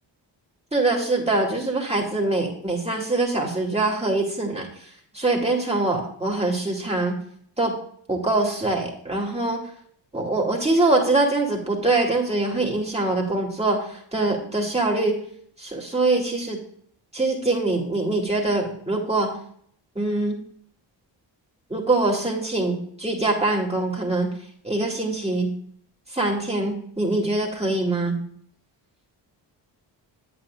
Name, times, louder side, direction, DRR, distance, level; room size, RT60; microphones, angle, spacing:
voice 1, 0.7-4.9 5.1-7.2 7.6-7.7 8.1-9.6 10.1-15.2 15.6-16.6 17.1-19.3 19.9-20.4 21.7-24.3 24.6-25.5 26.1-28.2, right 2 dB, 15° right, -1 dB, 2.7 m, -23 dB
9.3 x 8.3 x 2.5 m, 0.62 s
cardioid pair, 75°, 45 cm